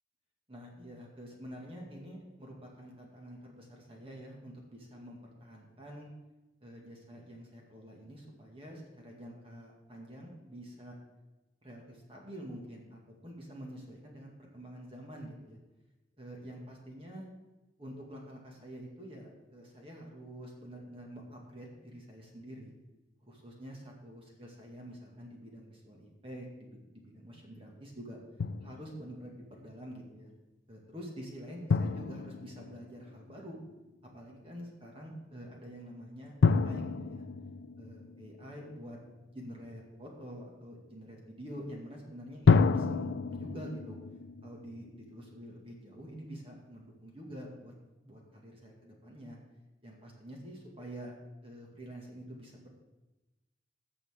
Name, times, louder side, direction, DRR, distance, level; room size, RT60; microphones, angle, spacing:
voice 1, 0.5-6.1 6.6-11.0 11.6-15.6 16.2-17.3 17.8-22.7 23.2-28.2 28.6-30.3 30.7-33.6 34.0-37.2 37.8-39.0 39.3-44.0 44.4-47.7 48.0-49.4 49.8-51.1 51.4-52.7, equal, 30° right, -1 dB, 2.0 m, -47 dB
Drum, 28.4-29.2 31.7-33.5 36.4-38.9 42.5-45.6, left 4 dB, 80° left, 0.4 m, -30 dB
18.0 x 7.0 x 3.7 m, 1.0 s
head